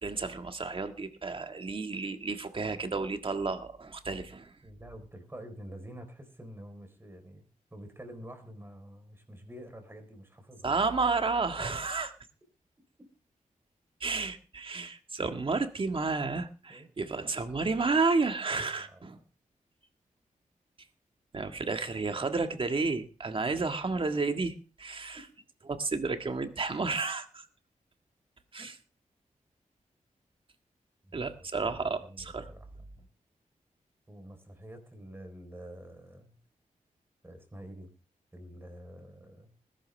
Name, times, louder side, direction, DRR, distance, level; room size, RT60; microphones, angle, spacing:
voice 1, 0.0-4.5 10.6-12.1 14.0-19.2 21.3-25.2 25.7-27.5 28.5-28.7 31.1-32.5, right 4 dB, 40° right, 6 dB, 1.7 m, -31 dB
voice 2, 4.6-7.4 7.7-10.7 11.8-11.9 16.7-16.9 18.8-19.2 28.6-28.7 31.0-32.7 34.1-36.4 37.2-37.9 38.3-39.5, right 1 dB, 15° right, 6 dB, 4.1 m, -48 dB
20.0 x 11.5 x 3.4 m, 0.34 s
wide cardioid pair, 125°, 14 cm